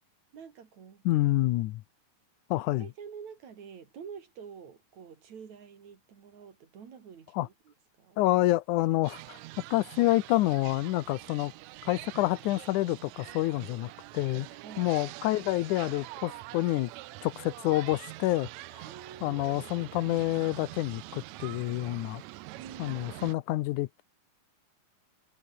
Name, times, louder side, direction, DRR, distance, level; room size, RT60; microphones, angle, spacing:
voice 1, 0.3-1.0 2.5-8.2 14.6-14.9 18.8-19.4 22.6-23.0, right 7 dB, 60° right, 3.9 m, -48 dB
voice 2, 1.1-1.8 2.5-2.9 7.3-7.5 8.2-9.4 9.7-11.5 11.9-14.5 14.8-16.9 17.2-18.5 18.7-18.9 19.2-22.2 22.8-24.0, left 17 dB, 75° left, 2.2 m, -28 dB
sound 1, 9.0-23.3, right 19 dB, 80° right, 1.6 m, -45 dB
omnidirectional pair, 3.7 m